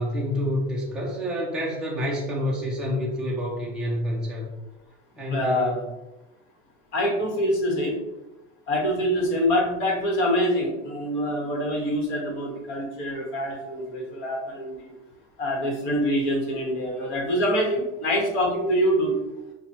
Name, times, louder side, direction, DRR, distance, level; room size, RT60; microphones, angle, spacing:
voice 1, 0.0-4.5 5.1-5.9, equal, ahead, -5 dB, 0.5 m, -28 dB
voice 2, 5.3-5.8 6.9-8.0 8.7-14.9 15.4-19.1, equal, 40° left, -1 dB, 1.2 m, -25 dB
5.7 x 2.3 x 2.7 m, 0.99 s
cardioid pair, 170°, 30 cm